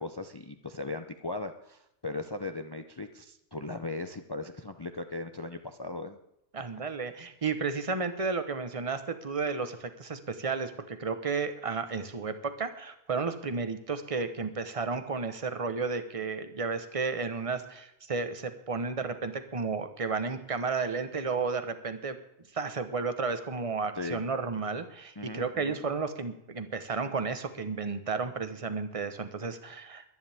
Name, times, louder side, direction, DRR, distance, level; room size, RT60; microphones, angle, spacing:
voice 1, 0.0-6.2 6.6-6.7 23.9-24.2 25.2-25.8, left 2 dB, 25° left, 8 dB, 0.6 m, -38 dB
voice 2, 6.5-22.2 22.5-30.1, right 4 dB, 30° right, 9 dB, 1.2 m, -32 dB
23.5 x 10.5 x 3.6 m, 0.81 s
omnidirectional pair, 1.2 m